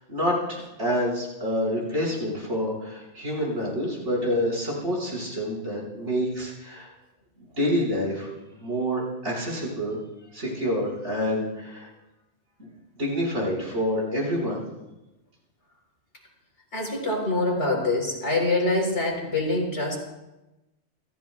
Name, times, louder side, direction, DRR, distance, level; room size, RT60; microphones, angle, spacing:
voice 1, 0.0-6.9 7.6-8.3 8.6-10.0 10.3-11.9 12.6-12.7 13.0-14.6, equal, 70° right, -4 dB, 6.6 m, -27 dB
voice 2, 16.7-20.0, left 2 dB, 60° left, -1 dB, 4.7 m, -25 dB
29.0 x 14.5 x 2.5 m, 0.99 s
omnidirectional pair, 1.2 m